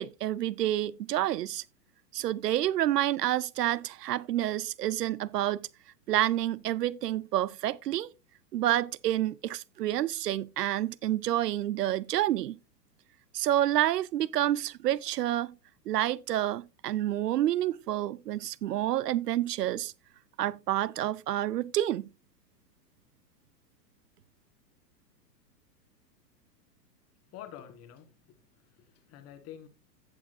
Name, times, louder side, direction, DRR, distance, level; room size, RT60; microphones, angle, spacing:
voice 1, 0.0-1.6 2.1-5.6 6.1-8.1 8.5-12.6 13.3-15.5 15.9-19.9 20.4-22.1, right 13 dB, 70° right, 0.6 m, -29 dB
voice 2, 27.3-29.7, left 10 dB, 30° left, 1.5 m, -48 dB
16.0 x 5.9 x 2.6 m
hypercardioid pair, 115°, 49 cm